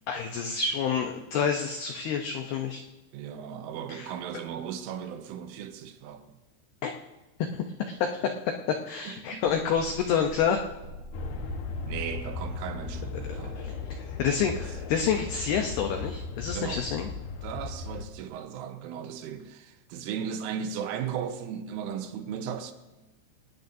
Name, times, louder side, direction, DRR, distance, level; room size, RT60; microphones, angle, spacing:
voice 1, 0.1-2.8 3.9-4.1 6.8-6.9 7.5-8.4 8.9-10.6 13.6-13.7 14.2-17.1, left 7 dB, 85° left, 2.2 m, -28 dB
voice 2, 3.1-6.4 9.1-9.4 11.9-13.6 14.6-14.7 16.6-16.9 17.4-22.7, right 8 dB, 80° right, 3.5 m, -36 dB
sound 1, 9.4-16.1, right 1 dB, 60° right, 2.0 m, -47 dB
sound 2, 11.1-18.1, left 4 dB, 65° left, 2.7 m, -36 dB
25.5 x 18.5 x 2.7 m
omnidirectional pair, 5.8 m